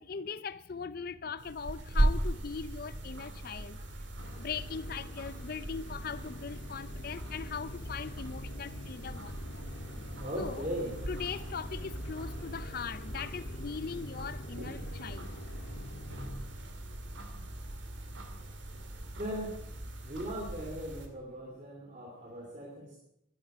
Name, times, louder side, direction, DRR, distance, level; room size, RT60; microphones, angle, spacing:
voice 1, 0.0-3.8 4.4-9.7 10.4-10.7 11.1-15.3, left 6 dB, 55° left, 0.5 m, -40 dB
sound 1, 1.4-21.1, right 1 dB, 85° right, 2.3 m, -38 dB
sound 2, 4.2-16.3, left 1 dB, 90° left, 1.8 m, -46 dB
voice 2, 10.2-10.9 19.1-19.5 20.1-23.0, equal, 40° right, 3.0 m, -38 dB
11.5 x 11.5 x 8.9 m
head